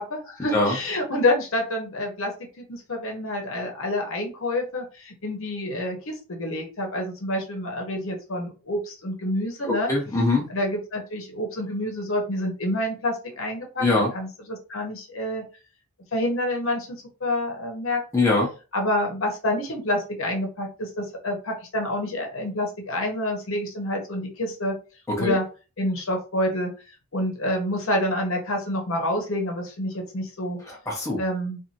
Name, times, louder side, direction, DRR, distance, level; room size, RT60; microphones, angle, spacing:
voice 1, 0.1-9.9 10.5-13.8 14.1-15.5 16.1-18.3 18.7-24.8 25.2-25.4 25.8-26.7 27.1-30.6 31.2-31.6, left 1 dB, 65° left, 1 dB, 0.9 m, -28 dB
voice 2, 9.6-10.5 13.8-14.1 18.1-18.5 25.1-25.4 30.7-31.2, left 2 dB, 15° left, -3 dB, 0.7 m, -22 dB
2.6 x 2.5 x 2.7 m, 0.33 s
head